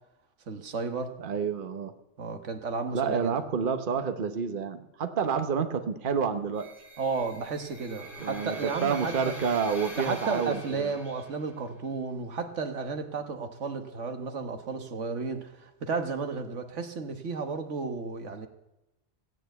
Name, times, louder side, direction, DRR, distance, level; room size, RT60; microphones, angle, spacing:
voice 1, 0.5-1.1 2.2-3.3 7.0-9.3 10.0-18.5, right 4 dB, 85° right, 6 dB, 1.6 m, -33 dB
voice 2, 1.2-1.9 2.9-6.7 8.2-10.9, right 6 dB, 50° right, 8 dB, 1.1 m, -29 dB
sound 1, 6.6-11.6, equal, 65° left, 2.9 m, -44 dB
16.0 x 9.0 x 8.1 m, 0.98 s
omnidirectional pair, 1.2 m